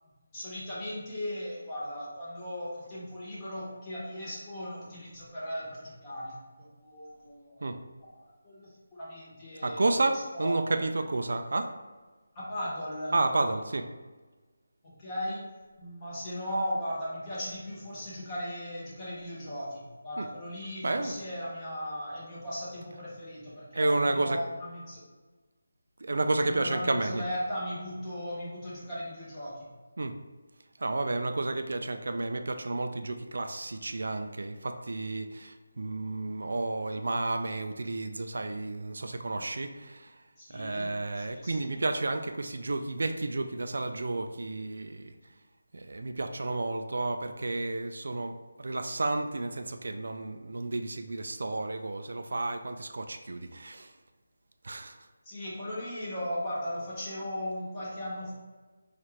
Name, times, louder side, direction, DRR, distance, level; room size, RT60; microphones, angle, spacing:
voice 1, 0.3-6.4 6.8-7.7 8.0-8.1 8.4-10.8 12.3-13.2 14.8-15.5 15.8-25.0 26.4-29.7 40.4-41.9 55.2-58.3, equal, 20° left, -9 dB, 1.2 m, -37 dB
voice 2, 9.6-11.7 13.1-13.9 20.2-20.3 20.8-21.2 22.9-23.0 23.7-24.4 26.0-27.3 30.0-30.1 30.8-40.2 40.5-45.1 45.7-48.3 48.6-53.9 54.6-55.0, right 2 dB, 65° right, 7 dB, 0.3 m, -31 dB
4.1 x 2.5 x 3.1 m, 1.3 s
figure-of-eight pair, 165°, 0 cm